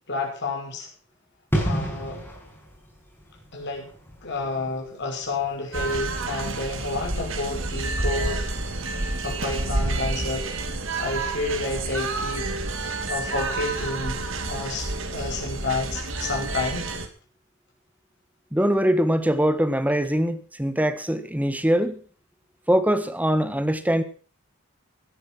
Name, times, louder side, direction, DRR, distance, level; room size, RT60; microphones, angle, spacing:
voice 1, 0.1-0.9 1.6-2.2 3.5-3.9 4.2-8.4 9.0-10.5 11.0-12.5 12.8-14.2 14.5-16.9, left 3 dB, 55° left, 5.6 m, -30 dB
sound 1, 1.5-8.0 8.3-8.4, equal, 10° left, 5.9 m, -33 dB
sound 2, 5.7-17.1, right 2 dB, 65° right, 2.5 m, -29 dB
voice 2, 18.5-21.9 22.7-24.0, equal, 5° right, 1.4 m, -22 dB
17.0 x 10.0 x 6.2 m
head